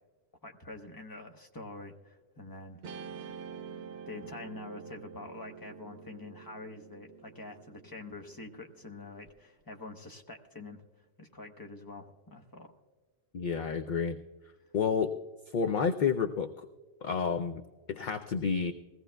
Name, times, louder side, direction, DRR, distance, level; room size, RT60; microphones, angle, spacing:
voice 1, 0.4-2.8 3.6-3.7 4.1-10.8 11.2-12.7, left 3 dB, 20° left, 3 dB, 0.9 m, -46 dB
Guitar, 2.8-9.3, right 6 dB, 85° right, 0.9 m, -47 dB
voice 2, 13.3-14.2 14.7-15.1 15.5-16.7 17.0-17.6 17.9-18.7, left 6 dB, 55° left, 6 dB, 0.6 m, -30 dB
21.0 x 16.0 x 2.3 m, 1.4 s
omnidirectional pair, 1.1 m